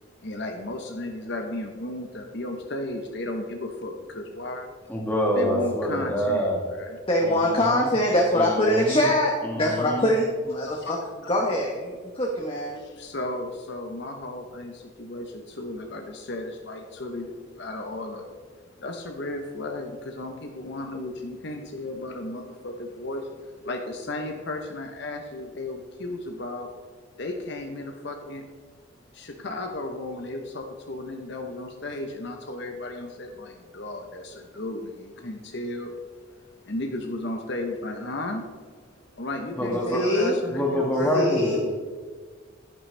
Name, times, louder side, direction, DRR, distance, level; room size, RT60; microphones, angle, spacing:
voice 1, 0.2-5.0 5.4-7.0 10.7-10.9 12.8-26.7 27.2-28.5 29.1-41.3, left 2 dB, 55° left, 3 dB, 0.9 m, -34 dB
voice 2, 4.9-6.6 7.2-7.9 8.4-9.1 9.4-10.1 39.6-40.0 40.5-41.8, equal, 10° left, -2 dB, 1.9 m, -26 dB
voice 3, 7.1-11.0 11.3-12.8 39.9-40.4 41.1-41.6, left 1 dB, 25° left, -1 dB, 1.1 m, -23 dB
11.0 x 10.0 x 3.3 m, 1.5 s
head